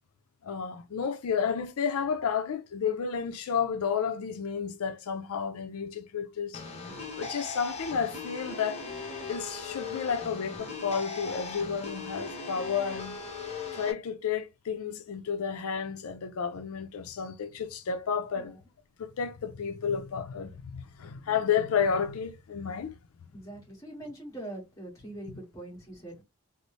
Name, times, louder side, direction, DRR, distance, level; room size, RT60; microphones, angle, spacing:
voice 1, 0.4-6.6 7.2-8.9 9.3-13.2 13.7-18.6 19.0-22.9, left 6 dB, 80° left, 0.4 m, -31 dB
sound 1, 6.5-13.9, left 4 dB, 30° left, 1.0 m, -39 dB
voice 2, 23.3-26.2, right 1 dB, 15° left, 1.5 m, -43 dB
3.9 x 2.0 x 3.1 m
head